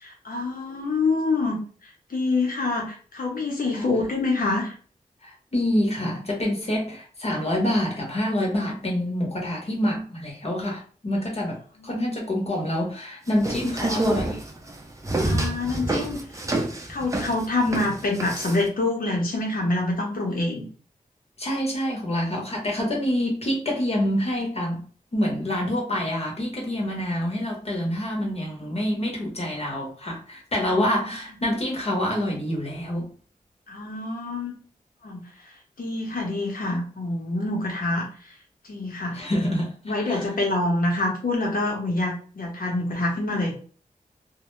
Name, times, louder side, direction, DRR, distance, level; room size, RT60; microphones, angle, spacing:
voice 1, 0.0-1.6 2.1-4.7 11.8-12.0 15.2-16.2 16.9-20.7 30.9-31.0 33.7-34.5 35.0-35.3 35.8-38.1 38.6-39.2 39.8-43.5, left 2 dB, 75° left, 0.8 m, -26 dB
voice 2, 5.2-14.4 21.4-24.8 25.1-33.1 39.1-40.3, left 1 dB, 45° left, 0.9 m, -26 dB
sound 1, 13.3-18.7, right 1 dB, 20° right, 0.5 m, -27 dB
2.1 x 2.0 x 3.0 m
wide cardioid pair, 70°, 15 cm